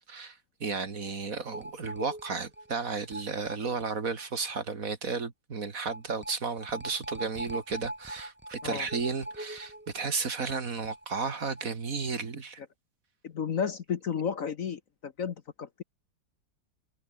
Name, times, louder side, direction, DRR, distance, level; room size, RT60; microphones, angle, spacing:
voice 1, 0.1-12.6, right 4 dB, 50° right, 2.4 m, -33 dB
sound 1, 1.5-4.2 4.5-4.6 4.9-5.0 5.9-11.6 11.9-12.0 12.3-12.4, right 1 dB, 5° right, 1.4 m, -42 dB
voice 2, 13.2-15.8, left 7 dB, 55° left, 1.3 m, -33 dB
omnidirectional pair, 2.0 m